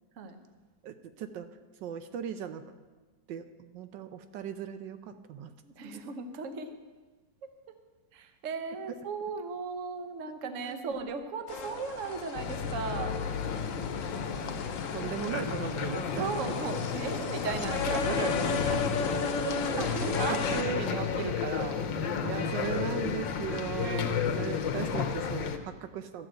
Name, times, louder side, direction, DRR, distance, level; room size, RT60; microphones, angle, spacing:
voice 1, 0.8-1.5 1.8-2.7 3.3-5.5 10.6-10.9 14.9-16.9 18.7-18.9 19.2-20.8 22.2-26.3, right 8 dB, 80° right, 9 dB, 1.3 m, -38 dB
voice 2, 5.6-6.7 8.1-13.2 16.1-18.8 19.8-21.8 23.8-24.1, right 5 dB, 50° right, 8 dB, 1.2 m, -36 dB
sound 1, 11.5-20.6, left 5 dB, 55° left, 1.0 m, -34 dB
sound 2, 12.3-25.6, left 6 dB, 85° left, 1.7 m, -33 dB
13.0 x 7.8 x 7.7 m, 1.3 s
omnidirectional pair, 2.0 m